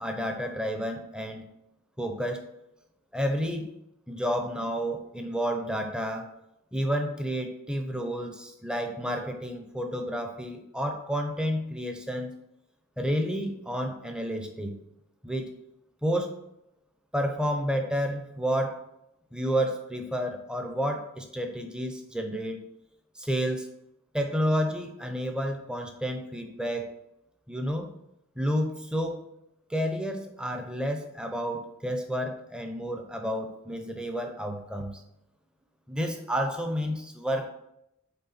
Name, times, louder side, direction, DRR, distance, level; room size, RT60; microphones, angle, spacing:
voice 1, 0.0-1.4 2.0-2.4 3.1-3.6 4.1-6.3 6.7-12.3 13.0-14.7 15.2-15.5 16.0-16.3 17.1-18.8 19.3-22.6 23.1-23.7 24.1-26.8 27.5-27.9 28.4-29.2 29.7-35.0 35.9-37.5, equal, 5° right, 4 dB, 0.7 m, -30 dB
6.9 x 4.4 x 4.2 m, 0.83 s
head